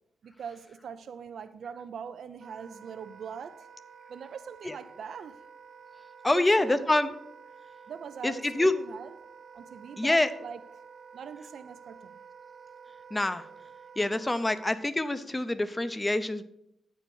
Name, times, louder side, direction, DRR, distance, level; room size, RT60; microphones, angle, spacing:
voice 1, 0.2-3.7 4.1-5.4 6.2-6.9 7.9-9.2 9.5-10.6 11.1-12.1, right 7 dB, 70° right, 0.4 m, -42 dB
Wind instrument woodwind instrument, 2.4-14.7, right 6 dB, 55° right, 1.3 m, -51 dB
voice 2, 6.2-7.1 8.2-8.7 10.0-10.3 13.1-13.4 14.0-16.4, left 2 dB, 15° left, 0.5 m, -26 dB
9.0 x 4.6 x 6.9 m
cardioid pair, 90°, 0 cm